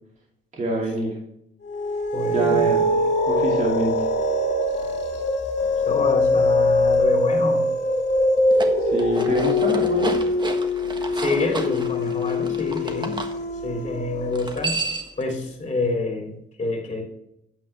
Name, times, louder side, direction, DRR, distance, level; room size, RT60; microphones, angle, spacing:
voice 1, 0.5-1.2 2.3-2.8 3.3-4.1 8.8-10.2, right 1 dB, 40° right, -2 dB, 2.6 m, -25 dB
sound 1, 1.7-14.5, left 2 dB, 60° left, 2.1 m, -23 dB
voice 2, 2.1-2.7 5.8-7.7 11.1-13.2 13.6-14.8 15.2-17.0, left 2 dB, 30° left, 0 dB, 2.9 m, -27 dB
sound 2, 8.4-13.3 14.3-15.2, right 3 dB, 20° right, 1.4 m, -32 dB
10.0 x 7.8 x 3.3 m, 0.78 s
cardioid pair, 90°, 20 cm